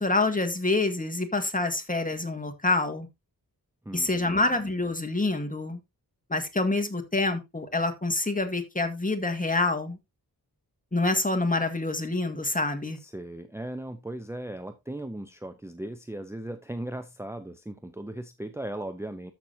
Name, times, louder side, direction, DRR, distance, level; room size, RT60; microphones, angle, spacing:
voice 1, 0.0-3.1 3.9-5.8 6.3-10.0 10.9-13.0, left 2 dB, 20° left, 5 dB, 1.8 m, -27 dB
voice 2, 3.8-4.4 13.0-19.3, right 1 dB, 5° right, 8 dB, 0.8 m, -37 dB
13.5 x 6.1 x 2.8 m, 0.21 s
wide cardioid pair, 65°, 38 cm